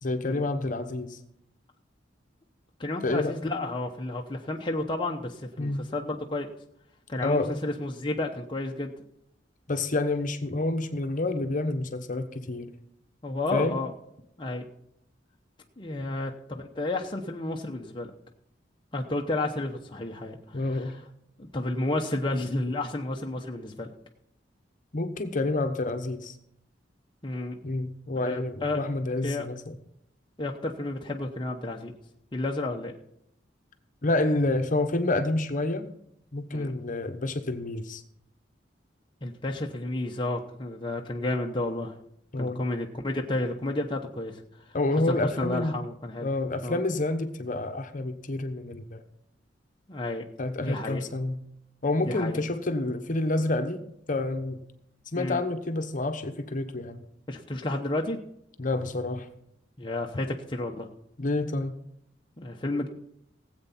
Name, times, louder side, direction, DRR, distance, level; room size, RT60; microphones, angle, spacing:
voice 1, 0.0-1.2 3.0-3.4 5.6-5.9 7.2-7.5 9.7-12.7 13.5-13.8 16.0-16.1 20.5-21.0 24.9-26.3 27.6-29.7 34.0-35.8 36.3-38.0 42.3-42.6 44.7-45.7 46.2-49.0 50.4-51.4 51.8-53.8 54.1-54.6 55.1-57.0 58.6-59.3 61.2-61.8, left 2 dB, 45° left, 8 dB, 1.1 m, -28 dB
voice 2, 2.8-6.5 7.1-8.9 13.2-13.9 14.4-14.7 15.8-18.1 18.9-21.0 21.4-23.9 27.2-27.6 28.2-28.8 29.2-29.5 30.4-31.9 32.3-32.9 36.5-36.7 39.2-42.0 42.4-46.3 46.6-46.8 49.9-50.2 50.6-51.0 52.1-52.4 55.1-55.4 57.3-58.2 59.8-60.9 62.4-62.9, left 2 dB, 25° left, 1 dB, 0.9 m, -31 dB
17.5 x 8.2 x 4.3 m, 0.75 s
head